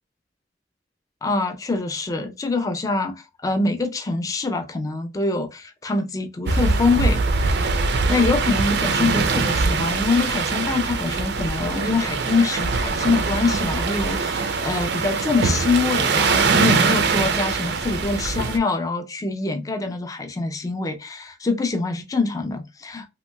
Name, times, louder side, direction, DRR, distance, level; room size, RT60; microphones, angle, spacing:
voice 1, 1.2-7.8 8.1-23.1, left 3 dB, 20° left, 0.3 m, -24 dB
sound 1, 6.5-18.6, right 4 dB, 60° right, 0.4 m, -22 dB
3.0 x 2.8 x 2.2 m
head